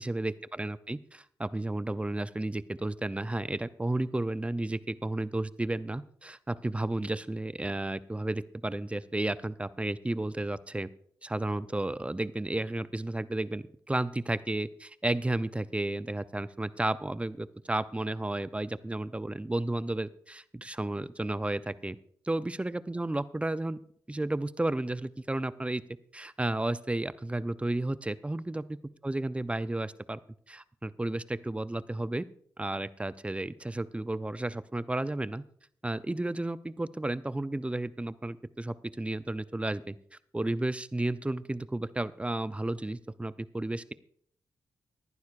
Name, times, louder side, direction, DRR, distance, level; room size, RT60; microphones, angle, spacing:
voice 1, 0.0-10.9 11.2-22.0 22.3-23.8 24.1-25.8 26.1-28.6 29.0-30.2 30.5-32.3 32.6-35.4 35.8-40.0 40.3-43.9, right 2 dB, 15° right, 15 dB, 0.6 m, -32 dB
18.0 x 11.5 x 2.5 m, 0.62 s
supercardioid pair, 45°, 8 cm